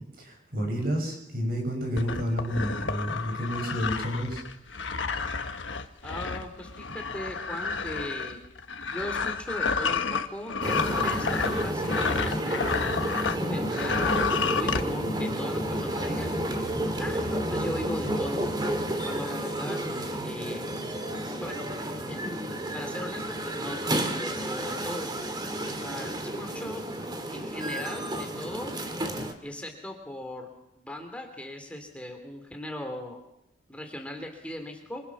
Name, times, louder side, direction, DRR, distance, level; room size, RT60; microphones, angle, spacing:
voice 1, 0.2-4.4, equal, 50° right, 3 dB, 6.8 m, -30 dB
sound 1, 2.0-13.4 13.7-14.8, left 5 dB, 75° left, 1.3 m, -30 dB
voice 2, 6.0-8.4 8.9-12.8 13.3-14.2 14.5-16.7 17.0-18.7 19.0-19.8 20.2-20.7 21.4-21.6 22.1-22.4 22.7-25.1 25.8-26.8 27.3-28.7 29.4-30.5 30.8-33.2 33.7-35.0, left 1 dB, 5° left, 3 dB, 2.9 m, -38 dB
sound 2, 10.6-29.3, right 1 dB, 25° right, 2.1 m, -31 dB
27.0 x 25.5 x 6.2 m, 0.83 s
head